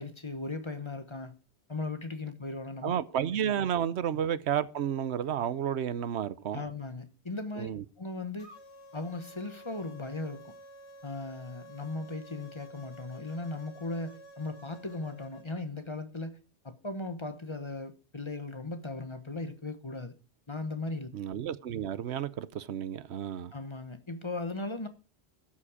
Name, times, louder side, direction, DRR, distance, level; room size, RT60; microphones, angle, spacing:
voice 1, 0.0-1.3 1.7-2.9 6.5-7.7 8.0-8.5 8.9-10.5 11.0-16.4 16.6-20.1 20.5-21.1 23.5-24.9, left 2 dB, 25° left, 1.1 m, -37 dB
voice 2, 2.8-6.6 7.6-7.8 21.1-23.5, right 9 dB, 90° right, 1.0 m, -31 dB
sound 1, 8.4-15.6, right 1 dB, 80° left, 2.3 m, -51 dB
12.5 x 7.5 x 5.0 m
omnidirectional pair, 1.1 m